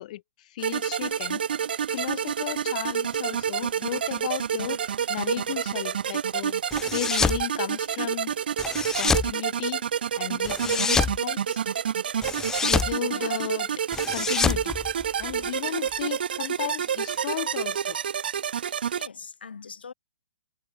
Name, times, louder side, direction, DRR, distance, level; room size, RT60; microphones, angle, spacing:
voice 1, 0.0-1.4 1.9-4.8 5.1-6.6 6.9-8.4 9.0-9.8 10.2-11.6 12.6-13.8 14.1-14.8 15.2-18.0, left 15 dB, 45° left, 1.0 m, -34 dB
sound 1, 0.6-19.1, right 8 dB, 70° right, 0.3 m, -28 dB
sound 2, 6.7-7.4 8.6-9.3 10.4-11.2 12.2-12.9 13.9-15.4, left 5 dB, 10° left, 0.6 m, -26 dB
voice 2, 13.1-13.4 18.7-19.9, left 5 dB, 75° left, 4.6 m, -43 dB
hypercardioid pair, 130°, 5 cm